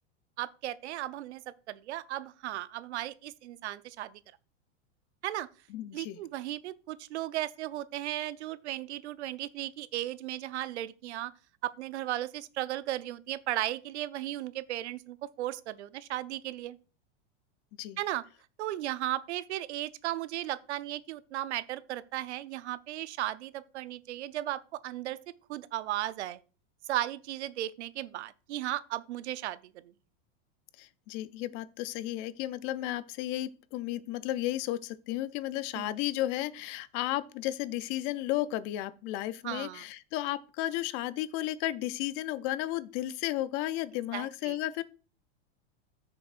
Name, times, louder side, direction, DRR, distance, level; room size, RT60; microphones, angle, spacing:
voice 1, 0.4-4.2 5.2-5.5 5.9-11.3 11.6-16.8 18.0-18.2 18.6-25.2 25.5-26.4 26.9-29.6 29.8-29.9 35.7-36.0 39.4-39.8 44.1-44.6, right 14 dB, 85° right, 0.6 m, -36 dB
voice 2, 5.7-6.2 17.8-18.0 30.8-44.8, left 15 dB, 35° left, 0.4 m, -33 dB
13.0 x 6.6 x 2.4 m
supercardioid pair, 140°, 33 cm